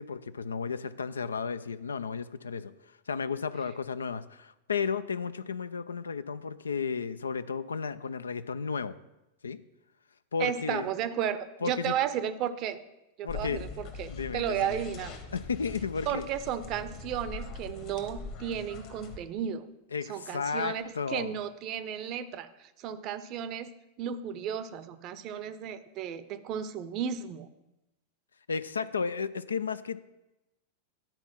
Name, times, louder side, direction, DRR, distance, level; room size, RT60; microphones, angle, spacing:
voice 1, 0.0-2.7 3.1-9.0 9.4-9.6 10.3-10.9 11.6-11.9 13.2-13.6 14.1-14.8 15.3-16.2 19.9-21.3 28.5-30.1, left 5 dB, 70° left, 14 dB, 0.4 m, -33 dB
voice 2, 10.4-12.8 13.2-15.1 16.1-19.7 20.1-23.7 24.0-27.5, right 9 dB, 40° right, 12 dB, 0.6 m, -34 dB
sound 1, 13.3-19.2, left 4 dB, 45° left, 1.3 m, -42 dB
10.5 x 4.4 x 5.9 m, 0.95 s
figure-of-eight pair, 90°, 0 cm